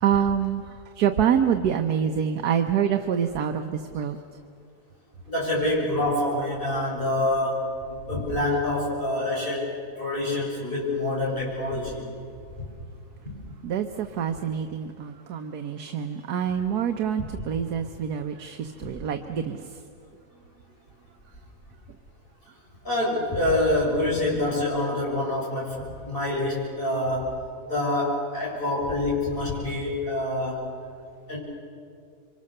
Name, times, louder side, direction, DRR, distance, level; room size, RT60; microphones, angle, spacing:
voice 1, 0.0-4.2 13.6-19.8, right 8 dB, 80° right, 6 dB, 1.4 m, -26 dB
voice 2, 5.3-9.7 10.0-12.1 12.6-12.7 13.2-13.4 17.2-17.3 22.8-27.4 27.6-30.6 31.3-31.4, left 1 dB, 35° left, -5 dB, 7.4 m, -26 dB
27.5 x 24.0 x 6.7 m, 2.3 s
omnidirectional pair, 1.6 m